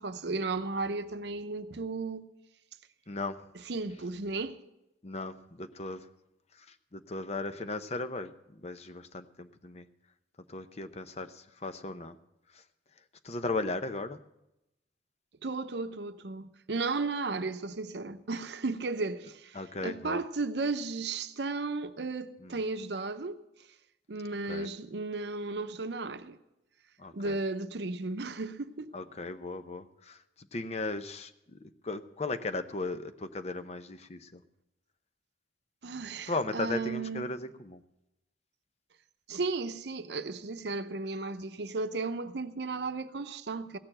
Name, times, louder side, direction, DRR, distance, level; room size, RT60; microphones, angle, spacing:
voice 1, 0.0-2.3 3.7-4.6 15.4-23.4 24.1-26.4 27.1-28.9 35.8-37.3 39.3-43.8, right 3 dB, 70° right, 0.7 m, -34 dB
voice 2, 3.1-3.4 5.0-6.1 6.6-9.9 10.5-12.2 12.5-12.6 13.2-14.2 19.5-20.2 22.4-22.6 24.5-24.7 27.0-27.4 28.9-30.2 30.5-34.4 36.3-37.8, left 3 dB, 35° left, 0.7 m, -37 dB
16.5 x 6.9 x 8.7 m
head